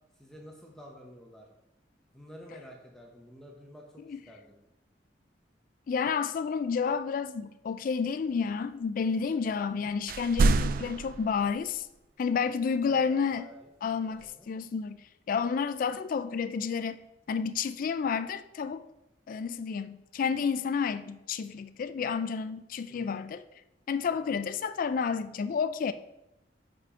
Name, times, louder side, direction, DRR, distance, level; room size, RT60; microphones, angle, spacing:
voice 1, 0.2-1.5 2.1-4.6 12.8-13.6 14.0-14.5 22.9-23.2, equal, 5° left, 0.7 m, -50 dB
voice 2, 5.9-11.9 12.2-13.4 13.8-15.0 15.3-17.0 17.3-18.8 19.3-23.4 23.9-25.9, left 6 dB, 50° left, 0.3 m, -30 dB
sound 1, 10.1-11.7 14.2-14.3, right 3 dB, 50° right, 0.3 m, -26 dB
5.6 x 4.9 x 4.9 m
head